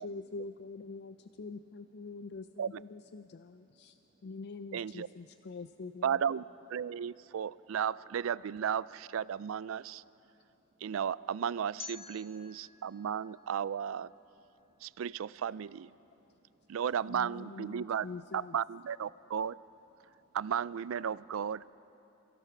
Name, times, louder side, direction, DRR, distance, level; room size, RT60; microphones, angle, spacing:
voice 1, 0.0-6.2 17.1-18.6, left 3 dB, 50° left, 10 dB, 0.4 m, -45 dB
voice 2, 2.0-2.3 3.2-4.4 5.2-5.5 6.8-7.8 9.8-10.9 12.2-12.9 13.2-13.3 14.2-15.4 15.9-16.8 17.7-17.8 20.0-20.6, right 2 dB, 50° right, 0 dB, 1.1 m, -73 dB
voice 3, 4.7-5.1 6.0-6.4 6.7-10.0 10.8-14.1 14.8-15.9 16.7-18.1 18.3-19.6 20.3-21.7, right 8 dB, 70° right, 19 dB, 0.4 m, -34 dB
sound 1, 11.8-14.7, left 5 dB, 30° left, 1.2 m, -51 dB
29.0 x 16.0 x 5.9 m, 2.9 s
head